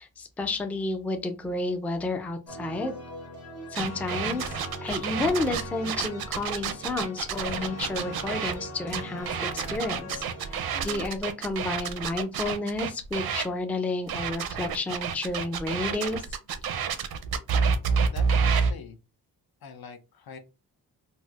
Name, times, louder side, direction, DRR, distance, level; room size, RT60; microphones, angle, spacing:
voice 1, 0.0-2.9 3.7-10.5 10.8-16.2, left 2 dB, 5° left, 6 dB, 0.3 m, -31 dB
sound 1, 2.5-11.1, equal, 40° left, 1.1 m, -40 dB
sound 2, 3.8-8.5 8.9-13.5 14.1-18.7, right 6 dB, 80° right, 0.6 m, -28 dB
voice 2, 18.1-19.0 19.6-20.4, left 5 dB, 80° left, 8 dB, 0.8 m, -44 dB
4.1 x 2.0 x 2.3 m, 0.28 s
wide cardioid pair, 160°, 36 cm